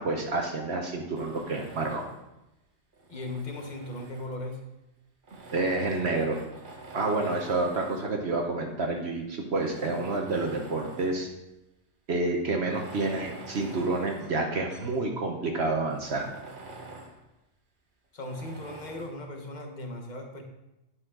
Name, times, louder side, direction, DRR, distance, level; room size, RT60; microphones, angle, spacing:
voice 1, 0.0-2.0 5.5-6.4 6.9-11.3 12.1-16.3, right 2 dB, 60° right, 2 dB, 1.2 m, -29 dB
Tools, 1.2-2.3 2.9-4.5 5.2-8.2 8.9-9.0 9.5-11.3 11.6-11.7 12.6-15.0 15.4-15.5 15.9-17.2 18.2-19.2, right 2 dB, 45° right, 1.2 m, -46 dB
voice 2, 3.1-4.6 18.1-20.4, left 2 dB, 40° left, 3 dB, 1.3 m, -37 dB
10.5 x 6.2 x 3.7 m, 0.93 s
omnidirectional pair, 1.3 m